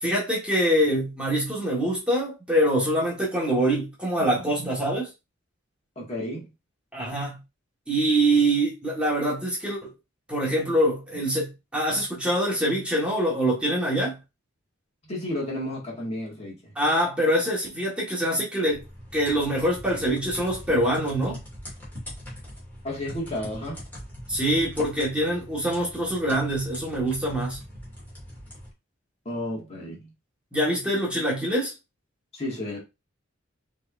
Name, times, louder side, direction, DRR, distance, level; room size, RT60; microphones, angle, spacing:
voice 1, 0.0-5.1 6.9-7.4 7.9-9.9 10.3-14.2 16.7-18.8 19.1-21.4 24.3-27.6 30.5-31.7, right 1 dB, 5° right, 1.5 m, -24 dB
voice 2, 6.0-6.5 15.0-16.7 22.8-23.8 29.3-30.1 32.3-32.8, left 1 dB, 30° left, 1.9 m, -32 dB
sound 1, 18.7-28.7, equal, 10° left, 2.4 m, -42 dB
5.8 x 3.4 x 2.5 m
head